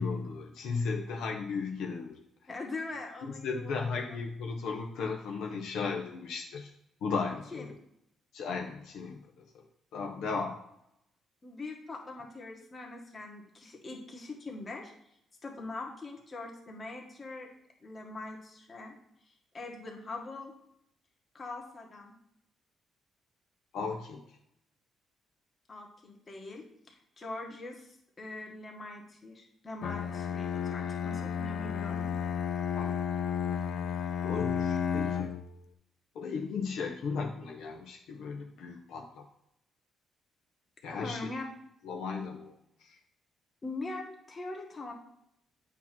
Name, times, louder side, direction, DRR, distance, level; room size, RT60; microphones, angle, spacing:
voice 1, 0.0-2.2 3.2-6.7 7.0-7.7 8.3-9.6 9.9-10.6 23.7-24.2 32.7-33.0 34.2-35.3 36.1-39.2 40.8-41.3 41.8-42.5 42.8-43.0, left 4 dB, 80° left, 1 dB, 0.9 m, -35 dB
voice 2, 2.5-4.2 7.5-7.7 11.4-14.9 15.4-17.5 17.8-19.0 19.2-20.5 21.3-22.1 25.7-32.1 40.9-41.4 43.6-44.9, left 2 dB, 35° left, 0 dB, 1.8 m, -42 dB
Bowed string instrument, 29.8-35.5, left 7 dB, 65° left, 0.5 m, -32 dB
8.3 x 3.0 x 6.1 m, 0.78 s
cardioid pair, 90°, 0 cm